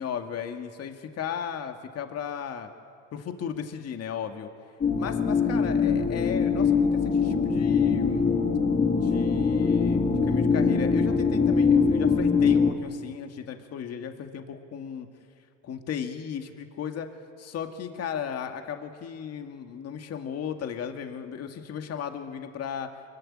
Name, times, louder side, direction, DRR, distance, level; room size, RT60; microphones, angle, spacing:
voice 1, 0.0-2.7 3.1-4.5 5.0-8.3 8.9-15.1 15.6-17.1 17.4-22.9, left 8 dB, 40° left, 6 dB, 2.1 m, -35 dB
sound 1, 4.8-12.7, left 5 dB, 25° left, 2.4 m, -23 dB
25.5 x 22.5 x 10.0 m, 2.2 s
cardioid pair, 130°, 36 cm